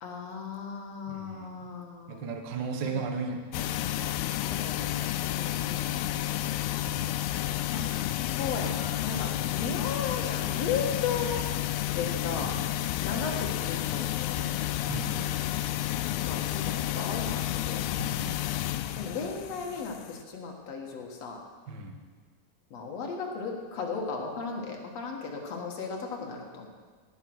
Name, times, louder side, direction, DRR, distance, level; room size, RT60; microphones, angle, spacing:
voice 1, 0.0-2.2 4.4-6.5 7.7-11.4 11.9-12.6 13.0-14.5 16.2-17.9 19.0-21.4 22.7-26.7, left 5 dB, 50° left, 0 dB, 2.5 m, -36 dB
voice 2, 1.1-1.7 2.1-4.1 6.8-7.2 12.2-12.9 14.9-15.4 18.0-18.4 21.7-22.0, right 4 dB, 75° right, 3 dB, 0.9 m, -37 dB
sound 1, 3.5-20.2, left 14 dB, 85° left, 2.5 m, -31 dB
17.5 x 8.6 x 6.2 m, 1.5 s
omnidirectional pair, 4.3 m